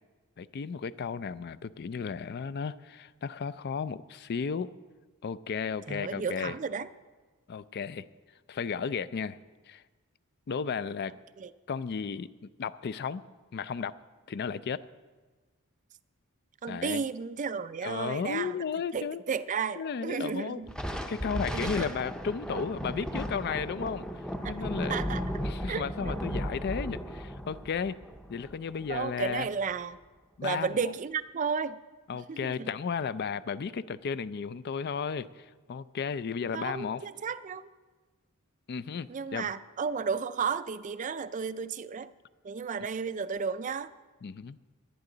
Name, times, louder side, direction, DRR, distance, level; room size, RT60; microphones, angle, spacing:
voice 1, 0.4-4.7 5.2-6.5 7.5-8.1 8.5-9.4 9.7-9.8 10.5-11.1 11.7-12.3 12.6-13.2 13.5-14.0 14.3-14.8 16.7-17.0 17.8-19.2 19.8-20.6 21.1-24.1 24.5-25.0 25.4-28.0 28.3-29.5 30.4-30.9 32.1-37.0 38.7-39.5 44.2-44.6, left 6 dB, 45° left, 15 dB, 0.4 m, -34 dB
voice 2, 5.9-6.9 11.4-11.5 16.6-18.6 18.9-20.7 21.5-21.9 24.4-24.6 24.8-25.2 25.6-26.2 28.9-30.0 30.4-31.8 32.1-32.7 36.5-37.7 39.1-42.1 42.4-43.9, right 6 dB, 35° right, 14 dB, 0.4 m, -33 dB
Thunder, 20.7-29.4, equal, 5° left, 0.6 m, -35 dB
sound 1, 24.0-27.4, left 7 dB, 90° left, 1.3 m, -55 dB
18.0 x 11.0 x 3.9 m, 1.3 s
head